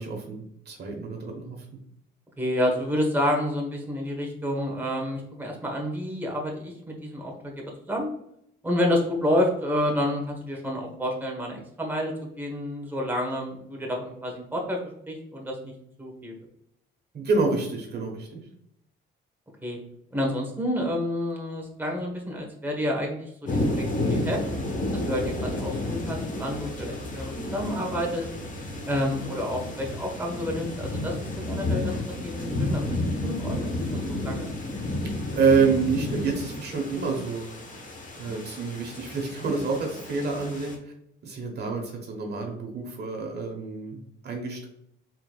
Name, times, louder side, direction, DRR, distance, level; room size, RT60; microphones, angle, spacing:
voice 1, 0.0-1.6 17.1-18.4 35.3-37.4 38.1-40.9 41.2-44.7, right 4 dB, 55° right, 1 dB, 1.2 m, -27 dB
voice 2, 2.4-8.1 8.6-14.8 15.1-15.7 16.0-16.3 19.6-19.8 20.1-24.4 24.9-28.3 28.8-31.9 32.2-34.5 38.3-38.4, left 1 dB, 10° right, -1 dB, 1.3 m, -29 dB
sound 1, 23.5-40.8, left 1 dB, 40° left, 1.1 m, -31 dB
4.4 x 3.9 x 2.4 m, 0.74 s
cardioid pair, 90°, 20 cm